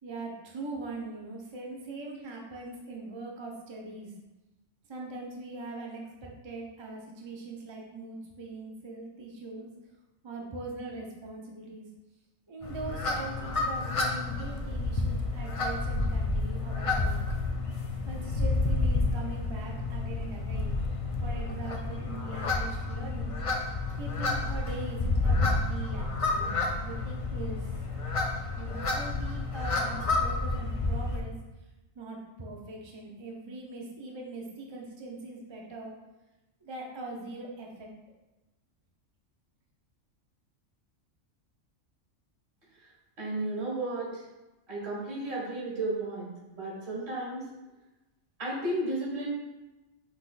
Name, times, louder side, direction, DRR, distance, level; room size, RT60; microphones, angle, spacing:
voice 1, 0.0-4.1 4.9-9.7 10.2-11.9 12.5-17.2 18.0-20.8 21.2-23.4 24.0-27.7 28.6-31.3 31.9-36.0 36.6-37.9, right 2 dB, 35° right, -1 dB, 0.4 m, -41 dB
sound 1, 12.6-31.2, left 3 dB, 65° left, 0.3 m, -30 dB
voice 2, 43.2-44.2 44.7-47.5 48.4-49.3, right 2 dB, 55° right, -5 dB, 2.0 m, -33 dB
6.0 x 3.6 x 2.4 m, 1.1 s
omnidirectional pair, 1.3 m